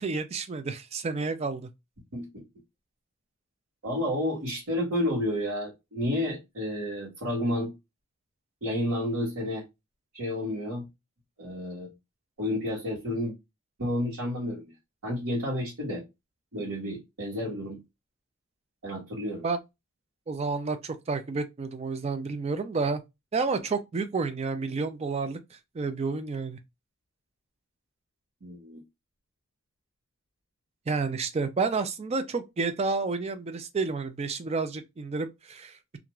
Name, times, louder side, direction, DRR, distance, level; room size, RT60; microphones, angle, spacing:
voice 1, 0.0-1.7 19.4-19.6 20.3-23.0 23.3-26.6 30.9-35.8, right 4 dB, 30° right, 0.4 m, -30 dB
voice 2, 2.1-2.4 3.8-7.7 8.6-9.6 10.1-10.8 11.4-11.9 12.4-13.3 13.8-14.7 15.0-16.0 16.5-17.8 18.8-19.4 28.4-28.8, left 1 dB, 85° right, 1.2 m, -30 dB
2.5 x 2.3 x 2.9 m
head